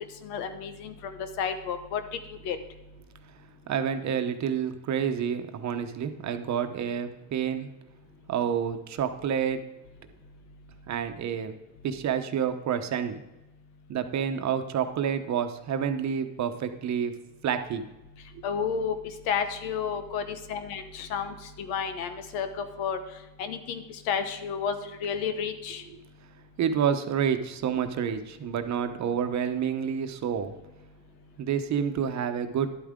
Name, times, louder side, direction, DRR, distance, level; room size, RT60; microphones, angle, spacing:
voice 1, 0.2-2.0 2.3-2.6 18.4-19.0 19.3-23.0 23.4-25.8, left 7 dB, 90° left, 9 dB, 1.1 m, -31 dB
voice 2, 3.7-7.7 8.3-9.7 10.9-11.5 11.8-13.1 13.9-17.1 17.4-17.8 26.6-30.5 31.4-32.8, right 8 dB, 50° right, 8 dB, 1.0 m, -28 dB
11.0 x 8.6 x 3.7 m, 0.99 s
cardioid pair, 100°, 36 cm